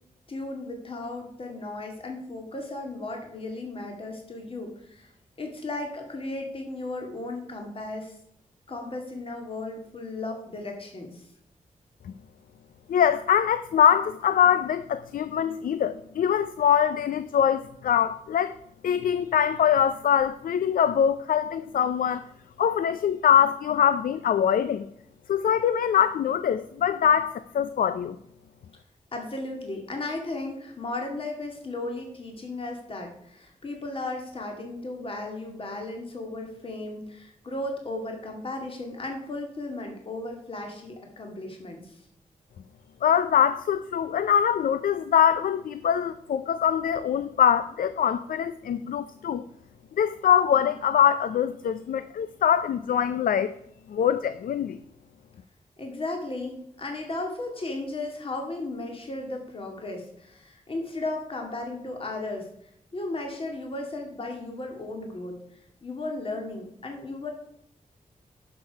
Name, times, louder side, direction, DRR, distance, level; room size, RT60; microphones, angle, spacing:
voice 1, 0.3-5.1 5.4-8.2 8.7-11.2 29.1-42.0 55.8-67.3, left 2 dB, 40° left, 2.1 m, -35 dB
voice 2, 12.9-18.6 18.8-22.2 22.6-24.9 25.3-28.2 43.0-49.4 50.0-53.5 53.9-54.8, left 8 dB, 85° left, 0.5 m, -23 dB
10.5 x 6.8 x 4.7 m
wide cardioid pair, 110°, 14 cm